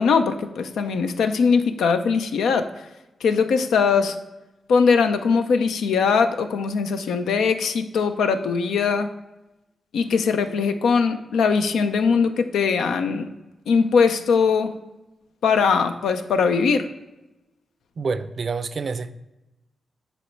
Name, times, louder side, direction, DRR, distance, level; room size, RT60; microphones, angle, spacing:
voice 1, 0.0-2.7 3.2-4.2 4.7-9.1 9.9-13.3 13.7-14.7 15.4-16.9, left 5 dB, 85° left, 0.5 m, -21 dB
voice 2, 18.0-19.1, right 4 dB, 60° right, 0.4 m, -27 dB
7.9 x 3.1 x 4.5 m
supercardioid pair, 50°, 0 cm